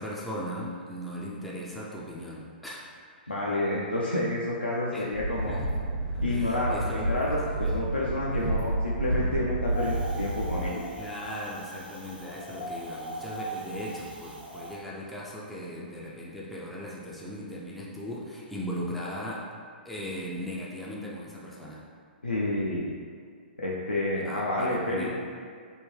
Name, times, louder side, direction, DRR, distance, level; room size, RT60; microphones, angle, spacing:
voice 1, 0.0-2.8 4.9-5.1 5.4-5.7 6.3-7.7 11.0-19.5 19.9-21.8 24.1-25.1, equal, ahead, -6 dB, 0.4 m, -38 dB
voice 2, 3.3-5.6 6.2-7.4 7.7-10.8 22.2-22.9 23.6-25.1, left 1 dB, 90° left, -6 dB, 0.4 m, -29 dB
sound 1, 5.1-10.7, right 1 dB, 50° right, 1.1 m, -30 dB
Wind, 9.7-14.8, right 1 dB, 75° right, 0.7 m, -39 dB
3.5 x 2.1 x 3.1 m, 2.2 s
figure-of-eight pair, 115°, 5 cm